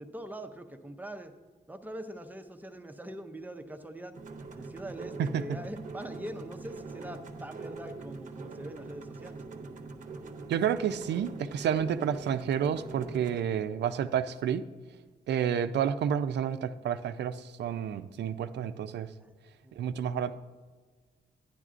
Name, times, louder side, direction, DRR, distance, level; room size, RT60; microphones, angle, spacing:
voice 1, 0.0-1.3 1.7-4.1 4.5-9.4 19.2-19.3 19.6-19.8, right 1 dB, 10° right, 6 dB, 0.5 m, -43 dB
sound 1, 4.1-13.4, right 3 dB, 50° right, 0.7 m, -43 dB
voice 2, 10.5-14.6 15.3-19.1 19.8-20.3, right 8 dB, 85° right, 11 dB, 0.4 m, -30 dB
12.0 x 10.0 x 2.5 m, 1.4 s
wide cardioid pair, 175°, 17 cm